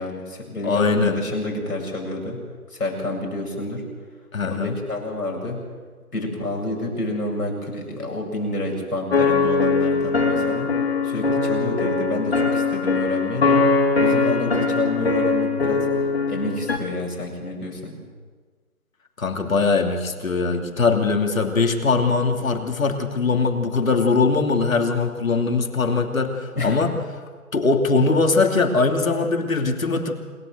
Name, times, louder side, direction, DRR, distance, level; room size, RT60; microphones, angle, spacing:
voice 1, 0.0-2.4 2.7-3.8 4.4-5.6 6.1-10.7 11.0-13.7 14.0-15.9 16.3-18.0 26.5-26.8, left 1 dB, 90° left, -1 dB, 7.8 m, -28 dB
voice 2, 0.6-1.2 4.3-4.8 19.2-26.9 27.5-30.1, left 4 dB, 65° left, 4 dB, 2.8 m, -21 dB
sound 1, 9.1-16.8, left 4 dB, 45° left, 2.1 m, -21 dB
27.5 x 13.0 x 7.9 m, 1.5 s
figure-of-eight pair, 160°, 44 cm